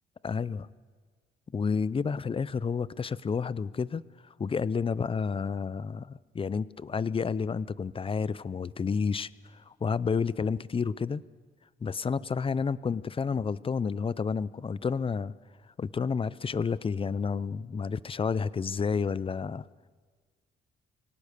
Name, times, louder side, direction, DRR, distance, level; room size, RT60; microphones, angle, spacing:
voice 1, 0.2-0.7 1.5-4.0 4.4-11.2 11.8-15.3 15.8-19.7, left 5 dB, 25° left, 20 dB, 0.5 m, -30 dB
24.0 x 17.5 x 6.7 m, 1.5 s
cardioid pair, 90°, 20 cm